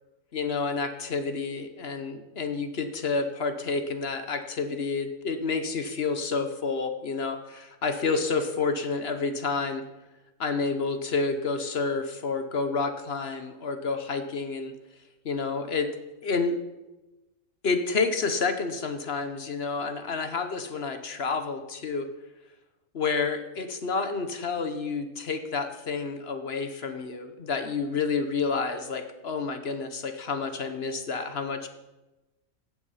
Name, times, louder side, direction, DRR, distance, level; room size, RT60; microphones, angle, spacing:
voice 1, 0.3-9.8 10.4-14.7 15.2-15.9 16.2-16.6 17.6-22.1 22.9-31.7, left 4 dB, 50° left, 8 dB, 1.1 m, -29 dB
15.0 x 8.2 x 5.7 m, 1.0 s
omnidirectional pair, 1.4 m